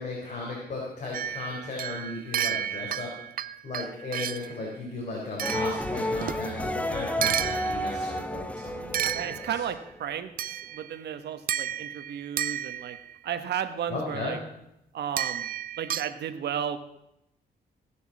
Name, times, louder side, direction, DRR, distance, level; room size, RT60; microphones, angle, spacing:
voice 1, 0.0-3.1 3.6-9.4 13.9-14.4, left 3 dB, 45° left, -3 dB, 4.0 m, -36 dB
sound 1, 1.1-4.6 5.4-6.5 7.2-8.1 8.9-9.8 10.4-11.0 11.5-13.1 15.2-16.1, right 10 dB, 55° right, 0.5 m, -32 dB
sound 2, 5.4-10.1, left 1 dB, 5° left, 0.7 m, -32 dB
voice 2, 9.0-13.0 13.2-14.4 14.9-16.8, right 9 dB, 80° right, 9 dB, 1.3 m, -34 dB
16.5 x 7.1 x 7.2 m, 0.82 s
cardioid pair, 110°, 17 cm